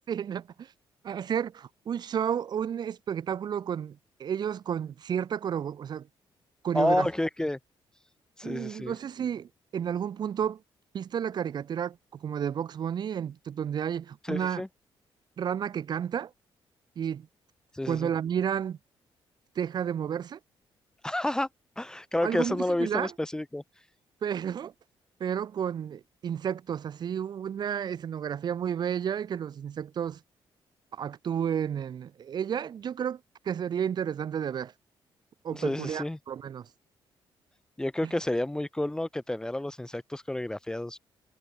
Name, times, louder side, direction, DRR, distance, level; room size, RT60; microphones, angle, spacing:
voice 1, 0.1-0.7 1.0-6.1 6.6-7.1 8.4-10.6 10.9-14.6 15.4-16.3 17.0-17.3 17.9-18.8 19.6-20.4 22.2-23.1 24.2-24.7 25.2-30.2 30.9-34.7 35.4-36.7 38.0-38.1, right 8 dB, 50° right, 2.2 m, -31 dB
voice 2, 6.7-7.6 8.4-8.9 14.3-14.7 17.7-18.1 21.0-21.5 21.8-23.6 35.5-36.2 37.8-41.0, left 1 dB, 5° left, 1.3 m, -30 dB
cardioid pair, 150°, 9 cm